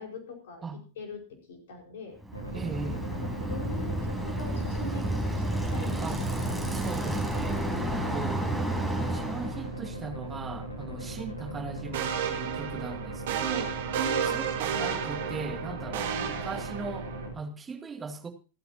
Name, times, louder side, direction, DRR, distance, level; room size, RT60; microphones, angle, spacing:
voice 1, 0.0-0.6 1.0-2.2 2.5-2.6 3.2-6.2 7.9-8.1 10.9-11.1 13.9-14.3 16.5-16.6, left 3 dB, 55° left, 4.9 m, -42 dB
Bicycle, 2.2-9.7, right 1 dB, ahead, 4.9 m, -31 dB
sound 1, 2.3-17.3, right 2 dB, 85° right, 2.5 m, -39 dB
voice 2, 2.5-3.0 6.0-6.3 6.7-7.6 7.9-8.5 9.0-13.8 14.2-18.3, right 4 dB, 15° right, 2.3 m, -39 dB
sound 2, 11.9-17.3, right 8 dB, 55° right, 2.2 m, -32 dB
28.0 x 9.7 x 2.8 m
figure-of-eight pair, 90°, 0 cm